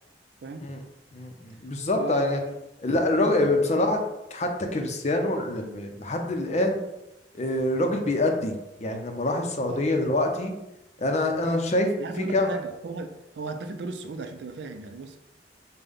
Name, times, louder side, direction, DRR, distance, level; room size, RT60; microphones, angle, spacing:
voice 1, 1.1-2.4 2.8-4.0 4.3-6.8 7.3-8.5 8.8-10.5 11.0-11.9 12.2-12.5, left 2 dB, 40° left, 3 dB, 0.6 m, -25 dB
voice 2, 2.0-2.6 3.2-3.8 9.7-9.8 11.4-11.6 12.0-15.2, right 3 dB, 70° right, 7 dB, 0.4 m, -36 dB
5.3 x 2.2 x 3.4 m, 0.93 s
head